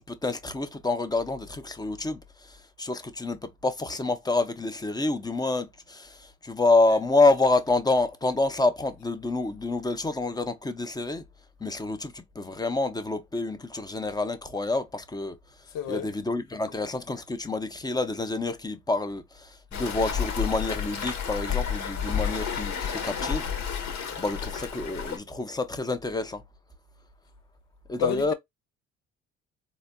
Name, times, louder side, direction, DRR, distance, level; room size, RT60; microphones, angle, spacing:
voice 1, 0.0-2.2 2.8-11.2 11.6-15.4 15.9-23.5 24.2-26.4 27.9-28.3, left 3 dB, 10° left, 0.7 m, -27 dB
voice 2, 15.7-16.1 28.0-28.3, left 7 dB, 75° left, 0.8 m, -29 dB
Waves surf, 19.7-25.2, left 7 dB, 60° left, 1.2 m, -31 dB
4.0 x 2.6 x 2.2 m
supercardioid pair, 80°, 33 cm